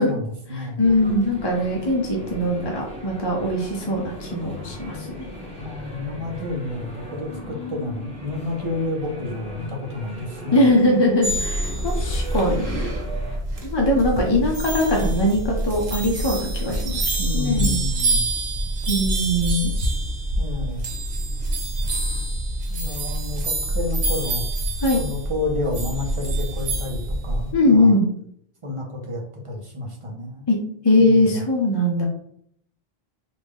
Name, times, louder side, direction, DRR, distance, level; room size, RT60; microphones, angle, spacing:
voice 1, 0.0-0.8 5.6-10.7 17.2-18.3 20.4-20.8 22.7-24.5 24.9-28.0 28.6-30.5 31.0-31.4, left 2 dB, 35° right, 0 dB, 0.6 m, -30 dB
voice 2, 0.5-5.3 10.5-12.8 13.6-17.1 17.3-17.8 18.9-19.7 24.8-25.0 27.5-28.1 30.5-30.6 30.8-32.1, left 1 dB, 35° left, -1 dB, 0.5 m, -21 dB
sound 1, 0.8-13.4, left 1 dB, 5° left, 1.2 m, -37 dB
sound 2, 11.2-27.5, right 1 dB, 80° right, 1.1 m, -26 dB
3.2 x 2.5 x 3.5 m, 0.67 s
omnidirectional pair, 1.1 m